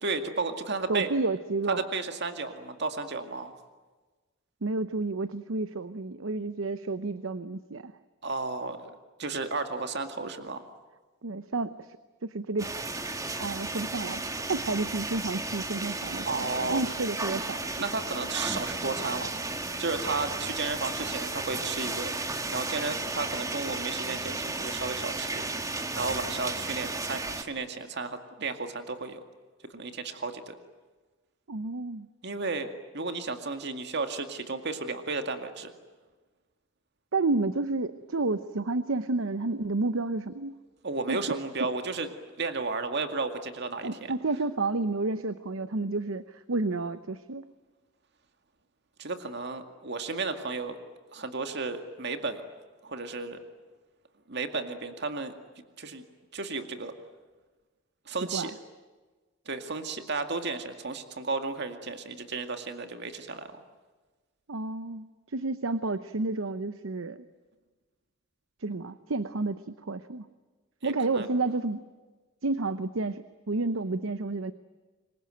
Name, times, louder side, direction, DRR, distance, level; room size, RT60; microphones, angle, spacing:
voice 1, 0.0-1.1 1.8-3.5 8.2-10.6 16.3-16.8 17.8-19.3 19.8-22.1 22.5-25.5 26.0-29.2 29.7-30.5 32.2-32.7 32.9-35.7 40.8-42.1 42.4-44.1 49.0-50.8 51.1-52.4 52.8-53.4 54.3-55.3 55.8-56.0 56.3-56.9 58.1-58.5 59.5-63.6 70.8-71.3, right 3 dB, 55° right, 7 dB, 2.2 m, -33 dB
voice 2, 0.9-1.9 4.6-7.9 11.2-11.9 12.2-12.7 13.4-14.2 14.5-17.7 31.5-32.1 37.1-40.6 41.1-41.4 43.8-47.5 58.3-58.5 64.5-67.3 68.6-70.2 70.8-71.8 72.4-74.5, right 3 dB, 80° right, 13 dB, 0.9 m, -30 dB
sound 1, 12.6-27.4, right 3 dB, 15° right, 1.6 m, -34 dB
26.5 x 23.0 x 9.1 m, 1.3 s
head